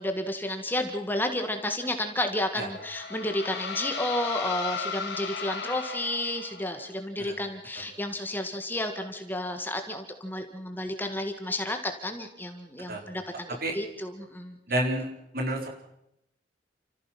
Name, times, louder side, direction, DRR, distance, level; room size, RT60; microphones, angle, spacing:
voice 1, 0.0-14.6, left 1 dB, 10° left, 6 dB, 1.8 m, -31 dB
sound 1, 2.5-6.8, left 5 dB, 75° left, 2.5 m, -36 dB
voice 2, 14.7-15.1 15.3-15.7, right 1 dB, 55° right, 2 dB, 4.2 m, -29 dB
29.5 x 15.0 x 5.9 m, 0.80 s
head